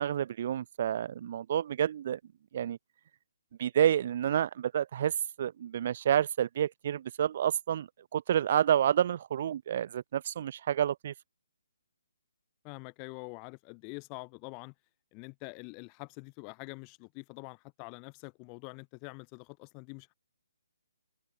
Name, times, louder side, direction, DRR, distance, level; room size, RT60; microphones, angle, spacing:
voice 1, 0.0-2.2 2.5-2.8 3.6-11.1, right 10 dB, 45° right, 0.3 m, -29 dB
voice 2, 12.6-14.7 15.1-20.1, left 39 dB, 25° left, 2.1 m, -45 dB
open air
figure-of-eight pair, 145°, 0 cm